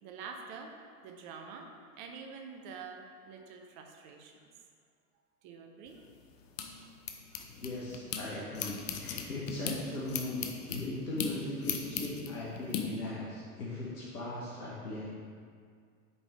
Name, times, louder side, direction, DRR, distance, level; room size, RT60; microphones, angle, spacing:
voice 1, 0.0-0.7 1.0-1.7 1.9-4.5 5.4-6.1 7.3-7.4, right 5 dB, 40° right, 3 dB, 0.7 m, -47 dB
sound 1, 5.9-8.2 8.5-12.8, left 7 dB, 60° left, 0.7 m, -38 dB
voice 2, 7.6-10.4 10.7-15.1, left 2 dB, 80° left, -7 dB, 1.2 m, -38 dB
sound 2, 8.4-12.3, left 5 dB, 10° left, 0.9 m, -59 dB
8.0 x 3.5 x 3.3 m, 2.1 s
figure-of-eight pair, 90°, 45 cm